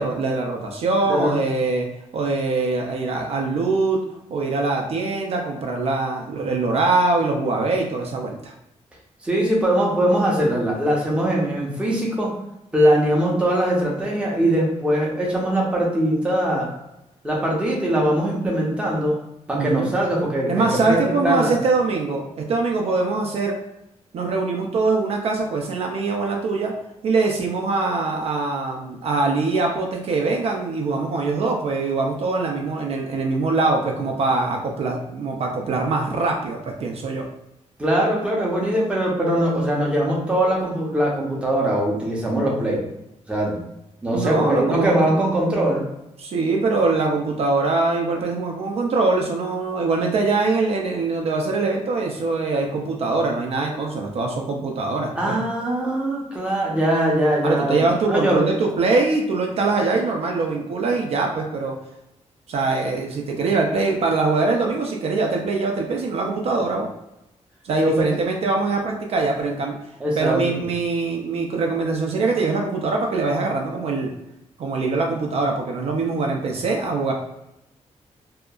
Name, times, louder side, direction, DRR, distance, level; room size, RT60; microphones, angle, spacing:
voice 1, 0.0-1.9 2.1-4.0 4.3-8.5 19.5-19.9 20.5-23.6 24.1-26.7 27.0-37.2 44.1-45.2 46.2-55.4 57.4-61.8 62.5-66.9 67.6-69.8 70.2-74.1 74.6-77.1, right 3 dB, 60° right, 1 dB, 0.4 m, -23 dB
voice 2, 9.2-12.3 12.7-16.7 17.2-19.2 19.5-21.6 37.8-42.8 43.3-43.6 44.0-45.9 55.1-58.5 67.8-68.2 70.0-70.4, right 1 dB, 10° right, -3 dB, 0.5 m, -21 dB
2.7 x 2.3 x 2.2 m, 0.89 s
wide cardioid pair, 175°, 12 cm